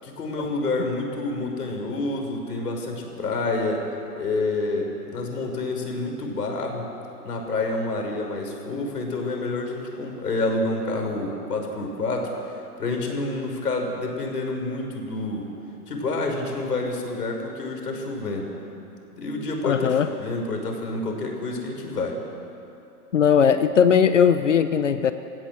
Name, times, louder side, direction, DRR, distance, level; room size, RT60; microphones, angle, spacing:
voice 1, 0.0-3.9 4.2-6.9 7.2-15.5 15.9-18.5 19.2-22.2, left 2 dB, 85° left, 2 dB, 6.0 m, -28 dB
voice 2, 19.6-20.1 23.1-25.1, left 7 dB, 50° left, 10 dB, 1.0 m, -18 dB
29.5 x 16.0 x 7.7 m, 2.9 s
hypercardioid pair, 175°, 46 cm